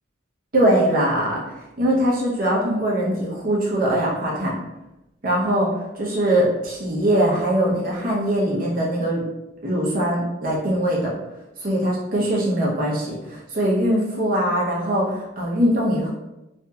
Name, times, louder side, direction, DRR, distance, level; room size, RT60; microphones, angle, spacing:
voice 1, 0.5-1.4 1.8-4.5 5.2-9.2 9.6-11.1 11.6-16.1, right 1 dB, 45° right, -4 dB, 0.7 m, -21 dB
2.8 x 2.5 x 2.3 m, 0.96 s
head